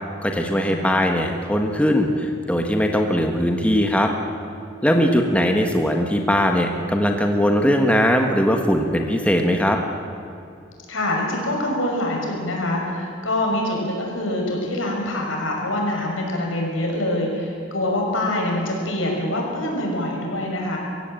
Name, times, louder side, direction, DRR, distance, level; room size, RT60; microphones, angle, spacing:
voice 1, 0.2-4.1 4.8-9.8, equal, 5° left, 3 dB, 1.4 m, -20 dB
voice 2, 10.9-20.8, left 1 dB, 85° left, 0 dB, 5.9 m, -25 dB
23.0 x 15.5 x 9.0 m, 2.5 s
head